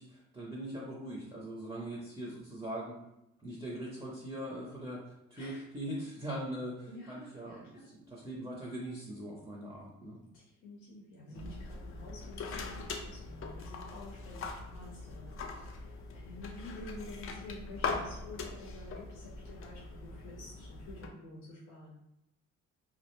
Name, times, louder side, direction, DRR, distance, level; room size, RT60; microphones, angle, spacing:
voice 1, 0.0-3.0 3.4-10.2 11.3-11.5, right 1 dB, 10° right, -4 dB, 0.5 m, -41 dB
voice 2, 5.4-5.7 6.9-7.9 10.3-22.0, left 2 dB, 85° left, -4 dB, 0.6 m, -50 dB
sound 1, 11.3-21.1, left 4 dB, 45° left, 0.4 m, -41 dB
2.3 x 2.0 x 3.0 m, 0.86 s
cardioid pair, 90°, 30 cm